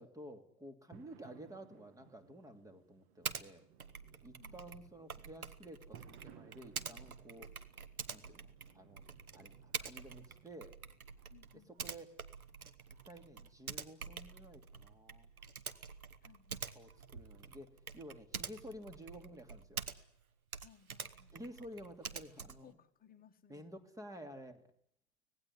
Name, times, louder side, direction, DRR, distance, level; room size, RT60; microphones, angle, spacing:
voice 1, 0.0-3.6 4.2-7.5 8.1-9.0 9.3-10.7 11.7-12.1 13.0-15.3 16.7-19.8 21.3-22.7 23.5-24.7, equal, 10° right, 9 dB, 2.9 m, -52 dB
sound 1, 0.9-18.9, right 10 dB, 45° right, 2.0 m, -64 dB
Typing, 3.2-3.5 3.8-20.2 20.5-22.7, right 6 dB, 80° right, 1.8 m, -47 dB
voice 2, 4.4-4.8 11.3-12.0 16.2-16.6 20.6-21.3 22.4-23.7, left 9 dB, 20° left, 8 dB, 1.9 m, -63 dB
25.5 x 19.0 x 9.9 m, 0.71 s
figure-of-eight pair, 95°, 43 cm